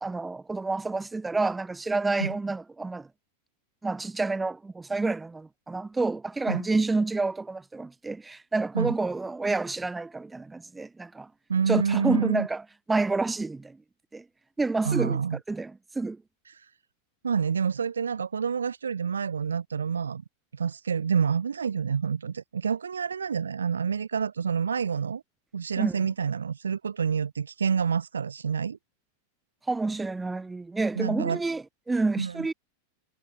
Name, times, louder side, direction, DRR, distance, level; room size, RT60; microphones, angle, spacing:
voice 1, 0.0-3.1 3.8-11.3 11.7-12.6 12.9-13.8 14.1-14.2 14.6-15.2 15.5-16.2 25.8-26.0 29.7-32.5, right 3 dB, 10° right, 1.2 m, -29 dB
voice 2, 11.5-12.5 14.8-15.4 16.5-16.7 17.2-20.2 20.5-25.2 25.5-28.8 31.0-31.4 32.2-32.5, right 6 dB, 70° right, 4.0 m, -28 dB
figure-of-eight pair, 90°, 0 cm